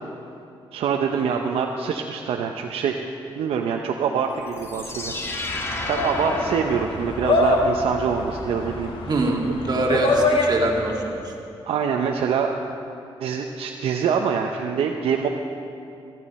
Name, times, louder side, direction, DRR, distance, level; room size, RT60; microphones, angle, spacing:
voice 1, 0.7-3.1 3.4-5.2 5.5-5.6 5.9-9.1 9.9-10.0 11.6-12.5 13.2-15.3, right 7 dB, 80° right, 2 dB, 0.7 m, -25 dB
sound 1, 4.5-7.6, left 2 dB, 25° left, 1.4 m, -32 dB
sound 2, 4.6-11.0, left 2 dB, 65° left, 1.8 m, -25 dB
voice 2, 9.1-11.3, right 2 dB, 45° right, 0 dB, 2.0 m, -24 dB
14.5 x 13.5 x 4.2 m, 2.6 s
cardioid pair, 80°, 10 cm